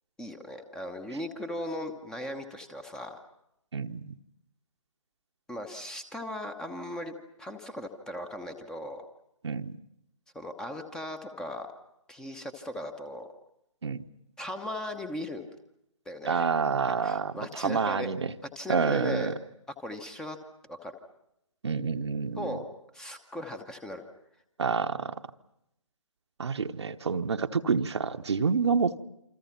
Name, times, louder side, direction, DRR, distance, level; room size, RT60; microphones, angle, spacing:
voice 1, 0.2-3.2 5.5-7.1 7.4-9.0 10.3-11.7 12.1-13.3 14.4-15.5 16.1-16.5 17.0-18.1 18.6-19.3 19.8-20.4 20.7-20.9 22.4-22.6 22.9-24.0, left 1 dB, 5° left, 8 dB, 1.0 m, -38 dB
voice 2, 3.7-4.1 9.4-9.8 13.8-14.0 16.2-18.3 18.7-19.3 21.6-22.6 24.6-25.1 26.4-29.0, right 5 dB, 55° right, 8 dB, 1.2 m, -28 dB
28.0 x 26.0 x 6.0 m, 0.81 s
figure-of-eight pair, 145°, 17 cm